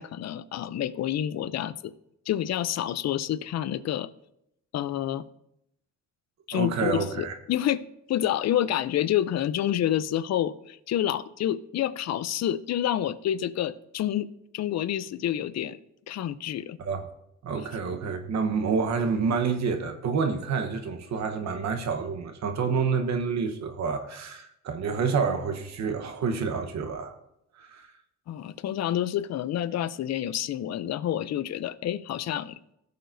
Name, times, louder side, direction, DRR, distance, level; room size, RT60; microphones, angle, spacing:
voice 1, 0.0-1.9 2.3-4.1 4.7-5.2 6.5-14.3 14.5-15.8 16.1-16.8 17.6-17.7 28.3-32.6, left 11 dB, 60° left, 0.6 m, -28 dB
voice 2, 6.5-7.3 16.8-17.1 17.4-27.2 27.6-27.9, right 5 dB, 65° right, 1.1 m, -28 dB
16.5 x 6.8 x 2.7 m
cardioid pair, 90°, 30 cm